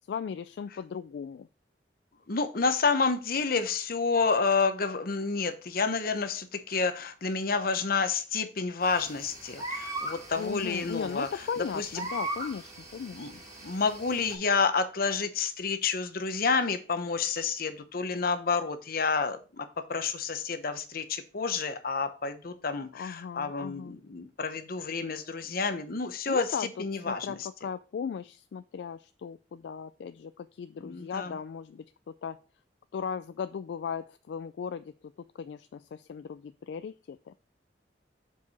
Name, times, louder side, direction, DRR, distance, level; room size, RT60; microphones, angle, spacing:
voice 1, 0.1-1.5 10.4-13.4 22.9-24.0 26.3-32.4 32.9-37.3, left 6 dB, 70° left, 13 dB, 0.3 m, -37 dB
voice 2, 2.3-11.3 11.6-11.9 13.1-13.3 13.6-26.5 26.8-27.4 30.8-31.4, left 4 dB, 55° left, 9 dB, 0.8 m, -29 dB
sound 1, 8.8-14.3, right 2 dB, 20° right, 2.2 m, -40 dB
7.1 x 4.8 x 4.1 m, 0.36 s
head